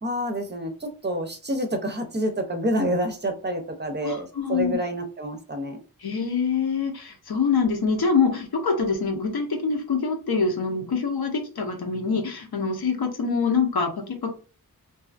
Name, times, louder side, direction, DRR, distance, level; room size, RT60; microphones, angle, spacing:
voice 1, 0.0-5.8, equal, 30° right, 6 dB, 0.5 m, -28 dB
voice 2, 4.0-4.8 6.0-14.3, left 5 dB, 85° left, 3 dB, 0.7 m, -25 dB
2.6 x 2.4 x 2.4 m, 0.36 s
wide cardioid pair, 75°, 37 cm